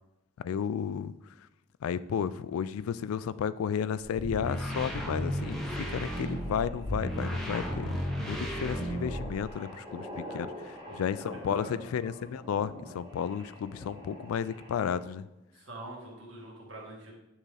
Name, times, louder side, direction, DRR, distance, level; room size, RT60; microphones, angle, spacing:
voice 1, 0.4-1.1 1.8-15.2, left 7 dB, 85° left, 16 dB, 0.3 m, -33 dB
sound 1, 4.1-9.5, equal, ahead, 0.7 m, -34 dB
sound 2, 5.2-15.2, equal, 20° right, 1.4 m, -46 dB
voice 2, 10.1-10.5 10.9-11.7 15.5-17.1, right 1 dB, 60° right, -1 dB, 1.7 m, -46 dB
8.9 x 3.7 x 3.3 m, 0.93 s
head